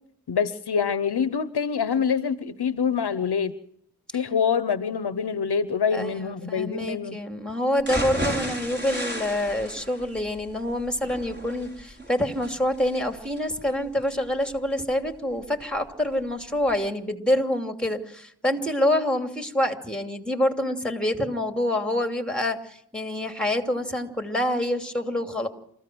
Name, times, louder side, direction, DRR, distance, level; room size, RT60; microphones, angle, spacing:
voice 1, 0.3-3.5 4.1-7.2, left 6 dB, 85° left, 14 dB, 0.9 m, -25 dB
voice 2, 5.9-25.5, left 1 dB, ahead, 5 dB, 2.7 m, -26 dB
sound 1, 7.8-15.8 16.2-16.3 16.7-16.8, equal, 25° right, 6.2 m, -34 dB
28.0 x 15.0 x 6.2 m, 0.69 s
cardioid pair, 45°, 38 cm